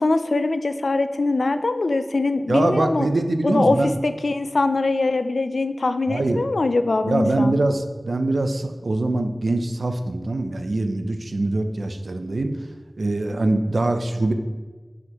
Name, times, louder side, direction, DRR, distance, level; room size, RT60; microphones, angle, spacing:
voice 1, 0.0-3.1 3.4-7.6, left 3 dB, 85° left, 10 dB, 0.4 m, -22 dB
voice 2, 2.5-3.9 6.1-6.4 7.1-12.6 13.0-14.3, right 2 dB, 80° right, 7 dB, 0.5 m, -23 dB
9.6 x 4.9 x 3.0 m, 1.3 s
wide cardioid pair, 50°, 0 cm